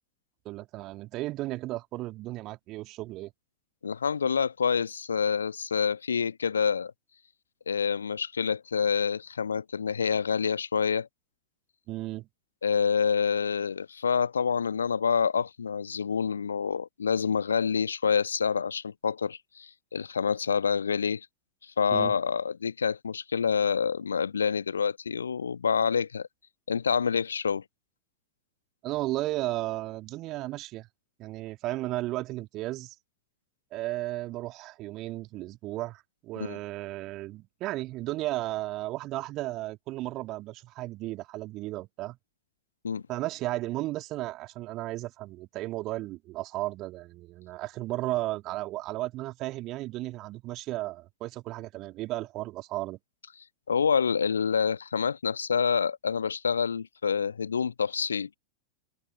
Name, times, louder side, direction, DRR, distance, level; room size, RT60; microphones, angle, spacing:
voice 1, 0.5-3.3 11.9-12.3 21.9-22.1 28.8-30.9 31.2-32.9 33.7-42.2 43.1-53.0, right 17 dB, 35° right, 2.1 m, -34 dB
voice 2, 3.8-6.9 7.7-11.1 12.6-21.3 21.6-26.3 26.7-27.6 36.4-36.6 42.8-43.0 53.7-58.3, left 6 dB, 70° left, 1.0 m, -27 dB
open air
figure-of-eight pair, 90°, 0 cm